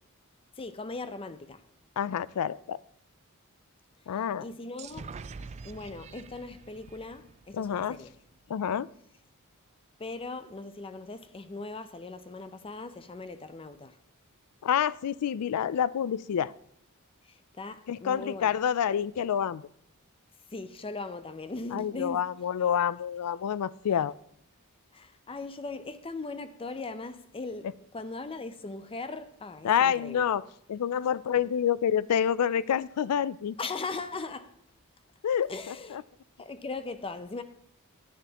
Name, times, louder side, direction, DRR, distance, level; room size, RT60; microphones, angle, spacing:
voice 1, 0.6-1.6 4.4-5.1 5.6-8.1 10.0-14.0 17.2-18.6 20.5-22.3 24.9-27.7 27.9-30.2 33.6-34.5 35.5-36.0 36.4-37.4, left 3 dB, 25° left, 0.5 m, -39 dB
voice 2, 2.0-2.8 4.1-4.4 7.5-8.0 8.5-8.9 14.6-16.5 17.9-19.6 21.7-24.1 29.6-30.4 30.7-33.6 35.2-36.0, left 8 dB, 90° left, 0.4 m, -28 dB
sound 1, 4.8-8.5, right 4 dB, 30° right, 0.3 m, -46 dB
10.0 x 9.2 x 2.9 m
head